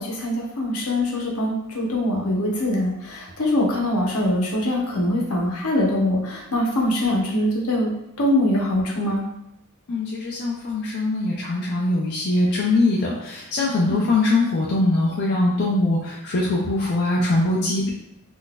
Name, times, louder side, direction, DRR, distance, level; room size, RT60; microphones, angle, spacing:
voice 1, 0.0-7.9 8.2-9.2, left 1 dB, 75° left, -2 dB, 0.8 m, -23 dB
voice 2, 9.9-17.9, left 2 dB, 50° left, -4 dB, 0.4 m, -22 dB
3.8 x 2.5 x 2.2 m, 0.84 s
head